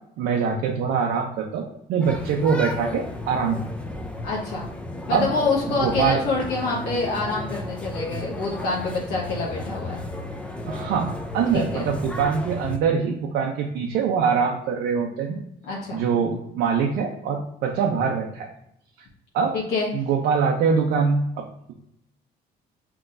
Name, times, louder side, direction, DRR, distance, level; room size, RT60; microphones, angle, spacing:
voice 1, 0.2-3.6 5.1-5.3 5.7-6.2 10.7-15.4 15.9-18.5 19.3-19.6 19.9-21.7, right 6 dB, 80° right, 0 dB, 0.7 m, -24 dB
sound 1, 2.0-12.8, left 2 dB, 5° left, 0.6 m, -33 dB
voice 2, 4.2-4.7 5.1-10.0 11.5-11.9 15.6-16.0 19.5-19.9, left 3 dB, 75° left, -4 dB, 1.1 m, -26 dB
5.9 x 2.9 x 2.5 m, 0.77 s
cardioid pair, 110°, 17 cm